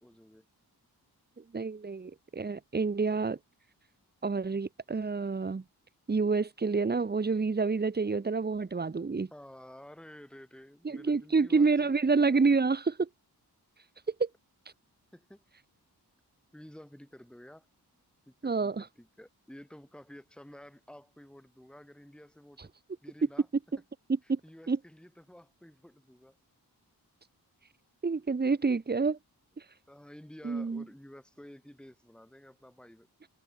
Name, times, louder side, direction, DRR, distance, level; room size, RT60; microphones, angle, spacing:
voice 1, 0.0-0.5 9.3-12.0 15.1-15.4 16.5-17.7 18.3-22.7 23.0-23.5 24.2-26.4 29.9-33.1, left 1 dB, ahead, 2.3 m, -52 dB
voice 2, 1.5-3.4 4.2-5.6 6.1-9.3 10.8-13.1 14.1-14.3 18.4-18.9 24.1-24.4 24.7-24.8 28.0-29.2 30.4-30.8, right 4 dB, 25° right, 0.8 m, -28 dB
wide cardioid pair, 65°, 39 cm